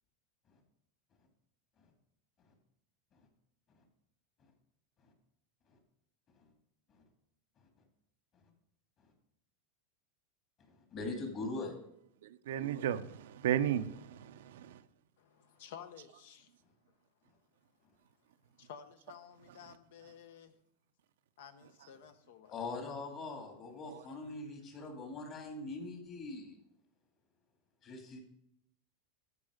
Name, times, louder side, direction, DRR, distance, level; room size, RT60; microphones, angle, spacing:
voice 1, 10.9-11.7 22.5-26.6 27.8-28.2, left 3 dB, 35° left, 2.5 m, -41 dB
voice 2, 12.2-14.8 19.5-19.7 21.8-21.9 23.8-24.0, right 10 dB, 80° right, 0.5 m, -35 dB
voice 3, 15.6-16.5 18.6-20.5 21.4-22.5, left 8 dB, 75° left, 1.0 m, -52 dB
13.5 x 4.8 x 5.1 m
supercardioid pair, 135°, 0 cm